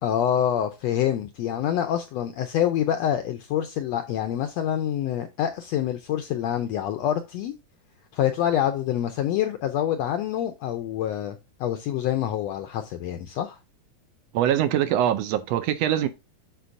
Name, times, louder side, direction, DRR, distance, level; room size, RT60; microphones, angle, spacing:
voice 1, 0.0-7.5 8.1-13.6, left 10 dB, 85° left, 1.5 m, -26 dB
voice 2, 14.3-16.1, right 11 dB, 90° right, 1.4 m, -23 dB
11.0 x 4.6 x 2.6 m
omnidirectional pair, 3.6 m